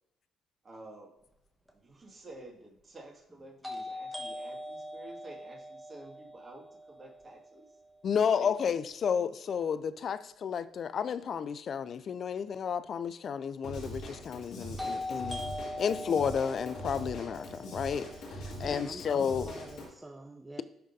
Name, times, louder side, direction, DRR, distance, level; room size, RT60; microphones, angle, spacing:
voice 1, 0.6-1.1 1.7-7.7 8.3-9.3, right 2 dB, 40° right, 2.1 m, -51 dB
sound 1, 1.7-1.8 3.6-7.5 14.8-18.8, left 1 dB, 5° right, 1.3 m, -41 dB
voice 2, 8.0-15.4 15.8-19.5, left 7 dB, 55° left, 0.4 m, -32 dB
Drum kit / Drum, 13.6-19.9, equal, 75° left, 2.1 m, -42 dB
voice 3, 18.6-20.6, right 1 dB, 20° right, 0.6 m, -47 dB
11.0 x 3.8 x 2.7 m
supercardioid pair, 60°, 0 cm